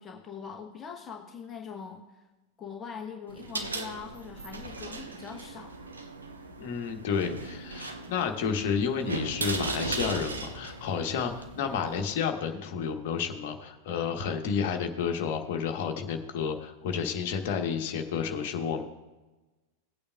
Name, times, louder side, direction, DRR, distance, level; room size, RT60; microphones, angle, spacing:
voice 1, 0.0-2.2 2.6-5.7, left 6 dB, 20° left, 1 dB, 1.1 m, -42 dB
sound 1, 3.3-12.0, right 3 dB, 75° right, 1.0 m, -37 dB
voice 2, 6.6-18.8, left 6 dB, 50° left, 4 dB, 1.2 m, -31 dB
18.5 x 8.6 x 2.4 m, 1.1 s
figure-of-eight pair, 90°, 0 cm